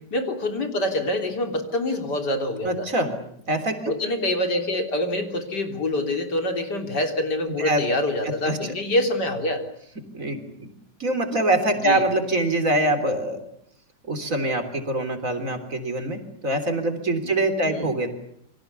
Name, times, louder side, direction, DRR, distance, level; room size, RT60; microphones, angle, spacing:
voice 1, 0.1-2.9 3.9-9.6 11.8-12.0 17.2-17.3 17.7-17.9, left 1 dB, 80° left, 5 dB, 4.0 m, -26 dB
voice 2, 2.6-3.1 3.5-3.9 7.6-7.8 8.2-8.7 10.1-10.4 11.0-13.4 14.1-18.1, right 1 dB, 50° right, 7 dB, 3.9 m, -24 dB
28.5 x 24.0 x 6.9 m, 0.70 s
omnidirectional pair, 1.8 m